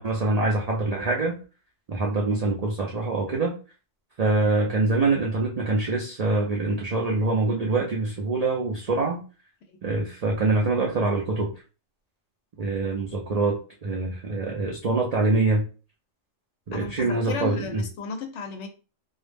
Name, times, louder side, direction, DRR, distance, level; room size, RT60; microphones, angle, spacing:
voice 1, 0.0-1.4 1.9-3.5 4.2-9.2 9.8-11.5 12.6-15.6 16.7-17.8, right 3 dB, 65° right, -2 dB, 0.4 m, -24 dB
voice 2, 16.7-18.7, left 5 dB, 70° left, 6 dB, 0.8 m, -34 dB
2.3 x 2.0 x 3.3 m, 0.34 s
omnidirectional pair, 1.3 m